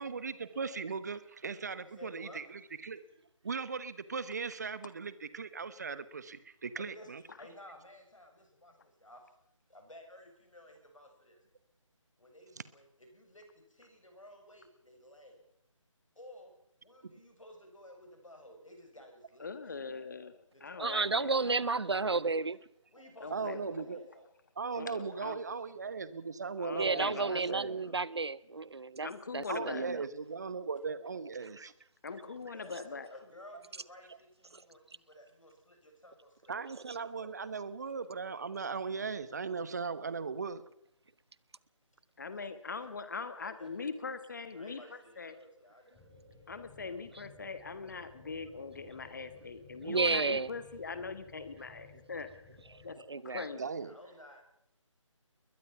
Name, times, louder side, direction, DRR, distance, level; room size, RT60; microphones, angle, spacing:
voice 1, 0.0-3.0 3.4-7.2 17.0-17.1 23.3-24.1 24.6-27.8 29.5-31.7 36.5-40.6 53.6-54.0, right 5 dB, 30° right, 1.1 m, -38 dB
voice 2, 1.8-2.4 6.7-7.1 7.4-9.3 9.7-11.4 12.2-15.4 16.2-16.5 16.8-19.5 19.8-20.2 20.5-22.1 22.9-24.3 24.7-25.9 32.5-36.5 36.9-37.5 43.4-44.2 44.5-46.1 53.8-54.4, left 1 dB, 75° left, 7.1 m, -55 dB
voice 3, 19.4-20.3 20.6-21.4 21.9-22.2 23.2-24.0 24.8-25.4 26.6-27.6 29.0-29.8 32.0-33.1 42.2-45.3 46.5-52.3 52.8-53.0 53.2-53.6, left 4 dB, 35° left, 1.5 m, -42 dB
voice 4, 20.8-22.6 26.7-29.1 29.3-30.0 31.6-31.7 49.8-50.5 53.1-53.4, right 4 dB, 55° right, 0.8 m, -32 dB
sound 1, 45.9-53.0, left 3 dB, 5° left, 4.4 m, -57 dB
21.5 x 20.5 x 5.9 m
figure-of-eight pair, 155°, 17 cm